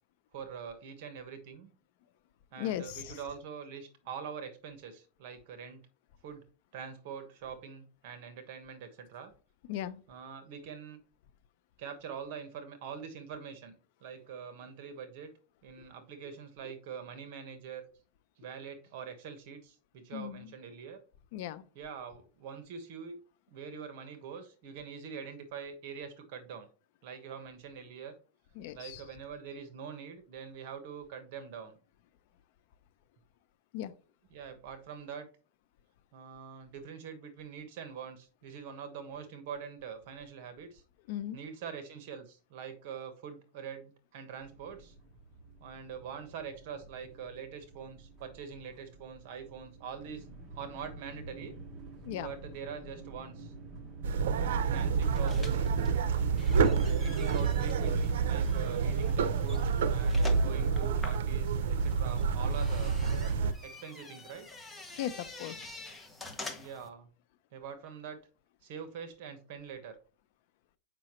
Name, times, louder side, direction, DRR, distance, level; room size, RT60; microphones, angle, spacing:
voice 1, 0.3-1.7 2.5-5.8 6.2-6.4 6.7-9.3 9.7-11.0 11.8-13.8 14.0-15.3 15.6-17.8 18.4-21.0 21.7-23.2 23.5-26.7 27.0-28.1 28.7-31.8 34.3-35.3 36.1-40.8 41.3-44.9 45.6-50.2 50.5-51.5 52.2-53.5 54.3-55.6 56.9-62.9 63.6-64.5 66.5-67.1 67.5-68.2 68.6-70.0, right 7 dB, 60° right, 1.3 m, -44 dB
voice 2, 2.6-3.2 9.7-10.0 15.8-15.9 20.1-20.5 21.3-21.6 28.6-29.0 33.7-33.9 41.1-41.4 52.0-52.3 65.0-65.8, left 11 dB, 60° left, 0.7 m, -38 dB
sound 1, 44.4-55.1, right 2 dB, 30° right, 1.3 m, -50 dB
sound 2, 54.0-63.5, right 5 dB, 85° right, 0.6 m, -28 dB
sound 3, 55.0-66.9, left 3 dB, 10° left, 1.0 m, -47 dB
6.8 x 5.4 x 3.1 m
supercardioid pair, 150°, 0 cm